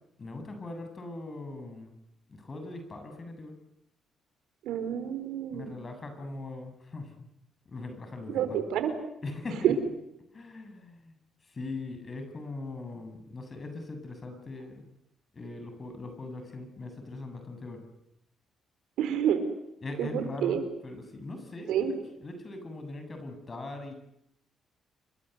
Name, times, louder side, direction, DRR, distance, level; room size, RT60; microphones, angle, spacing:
voice 1, 0.2-1.9 2.3-3.5 5.5-7.1 7.7-8.6 9.2-9.7 10.3-11.1 11.4-14.9 15.3-17.8 19.8-23.9, left 2 dB, 35° left, 6 dB, 7.7 m, -40 dB
voice 2, 4.6-5.7 8.3-8.9 9.6-9.7 19.0-19.4 20.0-20.6 21.7-21.9, right 10 dB, 85° right, 10 dB, 4.4 m, -28 dB
28.5 x 23.0 x 8.2 m, 0.81 s
cardioid pair, 90°, 0 cm